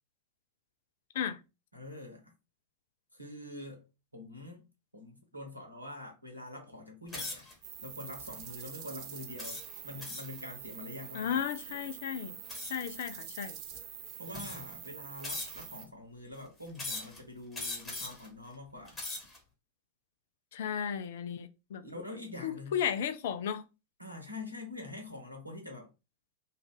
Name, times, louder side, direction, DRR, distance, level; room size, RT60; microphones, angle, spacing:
voice 1, 1.7-2.3 3.1-3.9 4.1-4.6 4.9-11.4 13.9-19.0 21.8-22.8 24.0-25.9, left 2 dB, 90° right, 0.9 m, -45 dB
sound 1, 7.1-7.5 8.2-8.4 9.4-10.4 12.5-12.9 13.7-13.8 14.3-14.8 15.2-15.8 16.7-17.2 17.5-18.3 18.8-19.4, left 2 dB, 15° left, 1.1 m, -40 dB
sound 2, 7.6-15.8, right 10 dB, 40° right, 0.5 m, -46 dB
voice 2, 11.1-12.4 12.7-13.6 20.5-21.8 22.4-23.6, left 8 dB, 55° left, 0.3 m, -34 dB
2.4 x 2.4 x 3.6 m
figure-of-eight pair, 90°, 0 cm